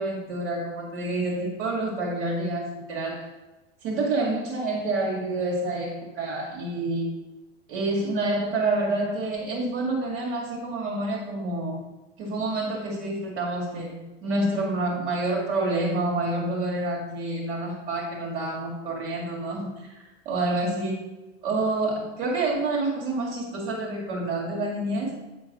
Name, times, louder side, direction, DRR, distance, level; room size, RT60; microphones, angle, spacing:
voice 1, 0.0-3.3 3.8-7.1 7.7-11.8 12.2-21.0 21.4-25.2, right 2 dB, 55° right, -2 dB, 2.3 m, -28 dB
9.4 x 3.8 x 6.1 m, 1.1 s
supercardioid pair, 140°, 33 cm